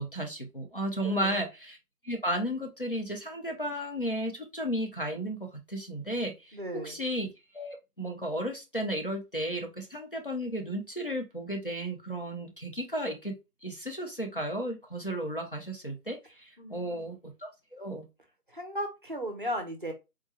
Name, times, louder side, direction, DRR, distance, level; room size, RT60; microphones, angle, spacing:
voice 1, 0.0-1.8 2.0-7.3 7.5-18.1, equal, 35° left, 0.6 m, -34 dB
voice 2, 1.0-1.4 6.5-7.0 16.6-17.0 18.5-19.9, equal, 35° right, 0.6 m, -36 dB
3.6 x 2.2 x 4.2 m
figure-of-eight pair, 170°, 47 cm